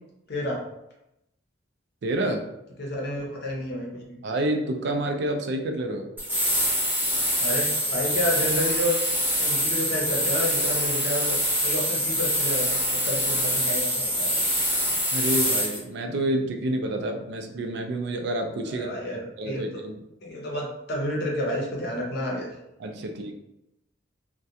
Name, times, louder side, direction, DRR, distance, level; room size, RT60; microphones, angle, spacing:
voice 1, 2.0-2.4 4.2-6.1 15.1-19.9 22.8-23.3, right 1 dB, 65° right, 4 dB, 0.4 m, -28 dB
voice 2, 2.8-4.2 7.4-9.0 9.4-11.4 11.6-12.8 13.0-14.5 18.7-19.7 20.2-22.5, equal, 60° left, -2 dB, 0.7 m, -30 dB
sound 1, 6.2-15.8, equal, 10° right, 0.6 m, -25 dB
2.3 x 2.2 x 2.7 m, 0.87 s
head